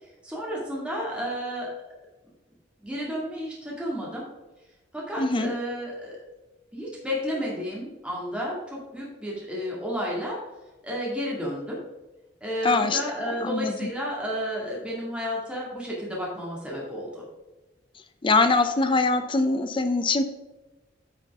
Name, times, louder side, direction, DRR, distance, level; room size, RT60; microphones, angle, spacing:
voice 1, 0.0-1.7 2.8-4.3 4.9-6.2 6.7-10.4 10.8-11.8 12.4-17.3, equal, 5° right, -4 dB, 2.2 m, -32 dB
voice 2, 5.2-5.5 12.6-13.7 18.2-20.2, left 3 dB, 30° left, 8 dB, 0.5 m, -23 dB
9.9 x 5.8 x 3.6 m, 1.1 s
head